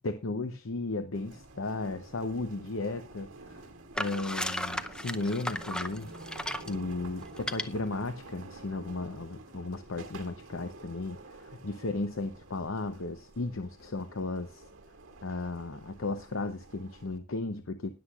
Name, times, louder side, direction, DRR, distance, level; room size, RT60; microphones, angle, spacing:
voice 1, 0.0-3.7 4.0-6.1 6.6-14.6 15.2-17.9, left 2 dB, 65° left, 9 dB, 0.8 m, -35 dB
sound 1, 1.1-17.2, right 2 dB, 60° right, 2.4 m, -49 dB
sound 2, 4.0-6.8 7.4-7.6, left 1 dB, 5° left, 0.6 m, -34 dB
20.0 x 7.9 x 2.4 m, 0.27 s
head